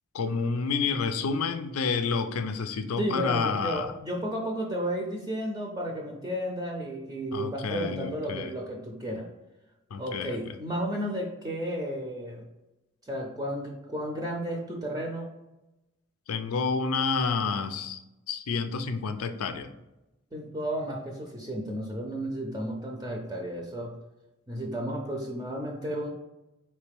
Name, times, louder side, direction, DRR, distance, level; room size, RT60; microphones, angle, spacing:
voice 1, 0.1-3.9 7.3-8.5 9.9-10.6 16.3-18.0 18.3-19.7, left 5 dB, 90° left, 9 dB, 0.5 m, -29 dB
voice 2, 3.0-9.3 10.0-12.4 13.0-15.3 20.3-24.0 24.5-26.1, equal, 15° right, 0 dB, 0.5 m, -33 dB
4.3 x 3.2 x 3.4 m, 0.97 s
head